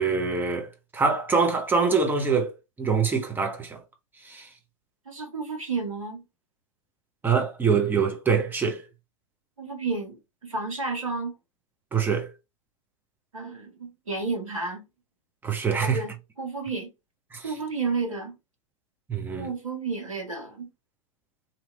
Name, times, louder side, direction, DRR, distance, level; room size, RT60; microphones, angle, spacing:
voice 1, 0.0-2.5 2.8-3.8 4.2-4.5 7.2-8.8 11.9-12.3 15.4-16.0 17.3-17.5 19.1-19.5, right 5 dB, 10° right, 0.8 m, -24 dB
voice 2, 5.0-6.2 9.6-11.3 13.3-14.8 15.8-16.9 17.4-18.4 19.4-20.7, right 4 dB, 80° right, 1.3 m, -31 dB
2.9 x 2.8 x 2.4 m
figure-of-eight pair, 95°, 17 cm